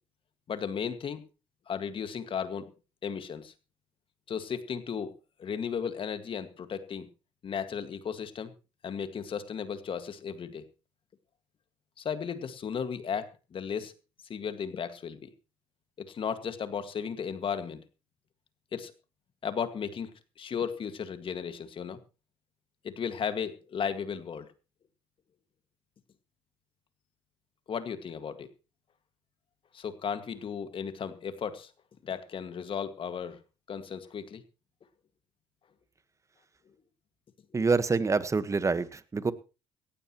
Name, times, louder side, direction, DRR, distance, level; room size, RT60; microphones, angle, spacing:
voice 1, 0.5-1.2 1.7-2.7 3.0-3.5 4.3-5.1 5.4-7.1 7.4-8.5 8.8-10.7 12.0-13.9 14.3-15.3 16.0-17.8 18.7-18.9 19.4-20.1 20.4-22.0 22.8-24.5 27.7-28.5 29.7-31.7 32.0-33.4 33.7-34.4, left 7 dB, 45° left, 10 dB, 2.0 m, -35 dB
voice 2, 37.5-39.3, right 4 dB, 25° right, 13 dB, 1.4 m, -26 dB
17.5 x 15.0 x 3.1 m, 0.31 s
supercardioid pair, 70°, 12 cm